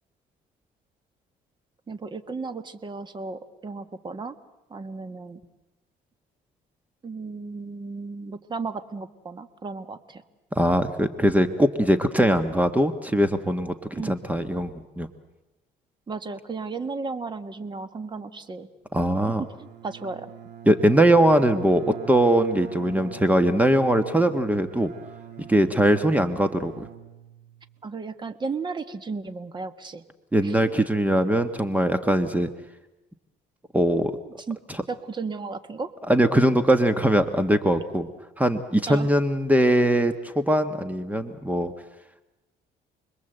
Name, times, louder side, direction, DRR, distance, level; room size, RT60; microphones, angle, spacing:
voice 1, 1.9-4.4 4.7-5.4 7.0-10.2 14.0-14.1 16.1-18.7 19.4-20.3 27.8-30.0 30.4-30.9 34.3-34.6 34.9-35.9 38.9-39.1, right 4 dB, 25° right, 10 dB, 1.7 m, -34 dB
voice 2, 10.5-15.1 18.9-19.4 20.7-24.9 25.5-26.9 30.3-32.5 33.7-34.2 36.1-38.1 38.4-41.7, right 1 dB, 10° right, 9 dB, 1.3 m, -21 dB
Bowed string instrument, 19.3-27.8, right 9 dB, 80° right, 2.8 m, -42 dB
29.5 x 21.5 x 8.0 m, 1.0 s
cardioid pair, 110°, 17 cm